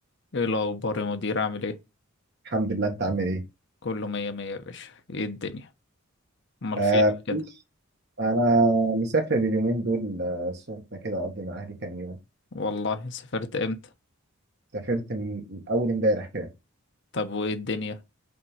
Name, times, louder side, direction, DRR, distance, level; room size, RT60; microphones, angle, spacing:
voice 1, 0.3-1.8 3.8-5.7 6.6-7.0 7.3-7.4 12.5-13.9 17.1-18.0, left 3 dB, 55° left, 0.9 m, -30 dB
voice 2, 2.4-3.4 6.8-7.4 8.2-12.2 14.7-16.5, right 2 dB, 50° right, 1.7 m, -25 dB
5.4 x 4.4 x 5.6 m
head